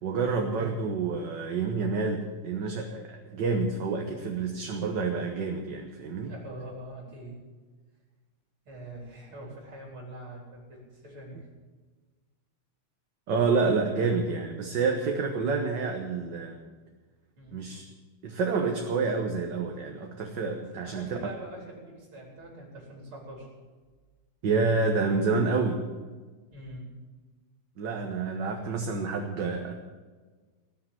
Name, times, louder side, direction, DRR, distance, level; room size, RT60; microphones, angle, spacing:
voice 1, 0.0-6.3 13.3-16.6 17.5-17.9 18.2-21.2 24.4-25.8 27.8-29.7, right 4 dB, 60° right, 2 dB, 1.8 m, -28 dB
voice 2, 6.3-7.4 8.7-11.5 17.4-17.6 20.8-23.5 26.5-26.9, right 1 dB, 85° right, -2 dB, 4.8 m, -43 dB
18.5 x 6.7 x 10.0 m, 1.4 s
omnidirectional pair, 2.3 m